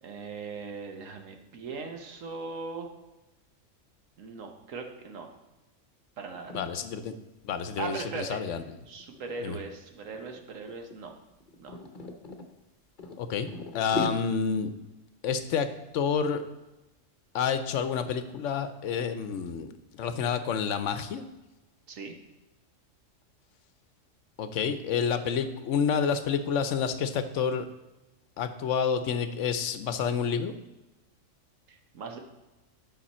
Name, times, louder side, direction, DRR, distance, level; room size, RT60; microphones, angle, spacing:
voice 1, 0.0-2.9 4.2-5.3 6.2-6.6 7.8-8.4 8.9-11.1 11.6-11.8 21.9-22.1 31.7-32.2, right 4 dB, 85° right, 4 dB, 1.4 m, -39 dB
sound 1, 6.3-6.6 7.0-7.2 7.5-9.4 10.1-10.4 10.7-12.5 13.0-14.1, left 2 dB, 45° left, 0.9 m, -38 dB
voice 2, 6.5-7.1 7.4-8.6 9.4-9.5 13.2-14.7 15.2-15.7 15.9-16.4 17.3-21.2 24.4-27.7 28.4-30.5, left 6 dB, 75° left, 10 dB, 1.0 m, -29 dB
10.0 x 5.6 x 4.2 m, 1.0 s
omnidirectional pair, 1.3 m